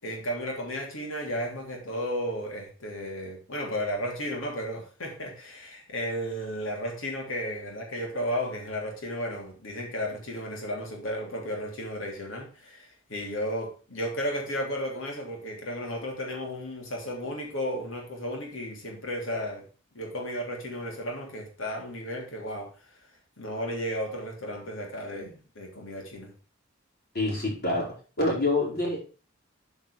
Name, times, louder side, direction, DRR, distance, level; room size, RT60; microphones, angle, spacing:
voice 1, 0.0-19.7 19.9-22.7 23.4-26.3, equal, 85° left, 3.2 m, -34 dB
voice 2, 27.1-27.9 28.2-29.0, left 2 dB, 50° left, 4.7 m, -26 dB
8.8 x 5.2 x 5.0 m
head